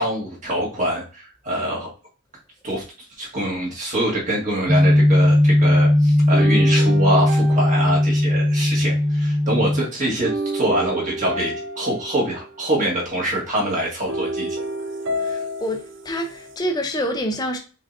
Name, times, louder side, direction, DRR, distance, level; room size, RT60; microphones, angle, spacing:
voice 1, 0.0-1.9 2.6-14.6, right 1 dB, 35° right, 1.7 m, -25 dB
sound 1, 4.7-9.8, left 1 dB, 20° right, 1.0 m, -17 dB
sound 2, 6.3-8.8 10.2-12.7 14.1-16.6, right 1 dB, 55° right, 0.5 m, -29 dB
voice 2, 15.2-17.6, equal, 20° left, 0.6 m, -27 dB
5.2 x 3.8 x 2.7 m
head